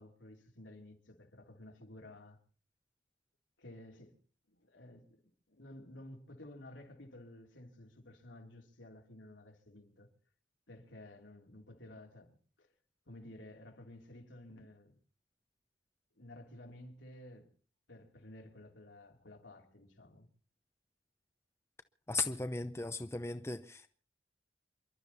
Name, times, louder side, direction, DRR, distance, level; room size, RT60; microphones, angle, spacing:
voice 1, 0.0-2.4 3.6-4.1 4.5-5.2 5.5-10.1 10.7-12.7 13.1-15.0 16.1-17.5 17.9-20.3, left 1 dB, 80° left, 3.2 m, -53 dB
voice 2, 22.1-23.9, left 3 dB, 15° left, 0.7 m, -37 dB
28.0 x 12.0 x 4.1 m
head